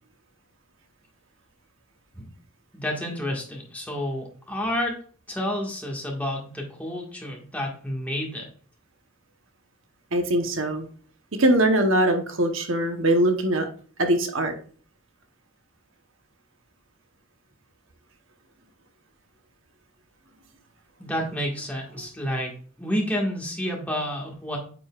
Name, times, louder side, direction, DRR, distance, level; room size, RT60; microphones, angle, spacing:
voice 1, 2.7-5.0 5.3-8.5 21.0-22.5 22.8-24.6, equal, 5° left, -1 dB, 1.6 m, -30 dB
voice 2, 10.1-10.9 11.4-13.7 14.0-14.5, right 1 dB, 60° right, 5 dB, 1.0 m, -22 dB
8.9 x 5.4 x 2.4 m, 0.43 s
head